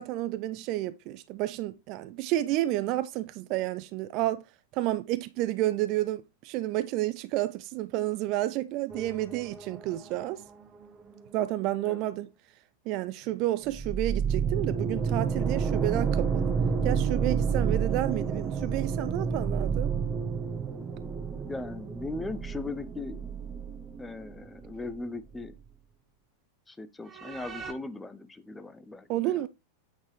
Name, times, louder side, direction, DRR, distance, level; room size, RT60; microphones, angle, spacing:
voice 1, 0.0-4.4 4.7-10.4 11.3-12.3 12.9-16.6 16.8-19.9 29.1-29.5, right 15 dB, 40° right, 0.4 m, -30 dB
sound 1, 8.9-11.7 13.7-25.1 25.3-25.4 27.1-27.7, right 6 dB, 25° right, 0.8 m, -30 dB
voice 2, 21.4-23.4 24.0-25.6 26.7-29.5, left 3 dB, 10° left, 0.5 m, -39 dB
8.4 x 4.0 x 3.1 m
figure-of-eight pair, 90°, 0 cm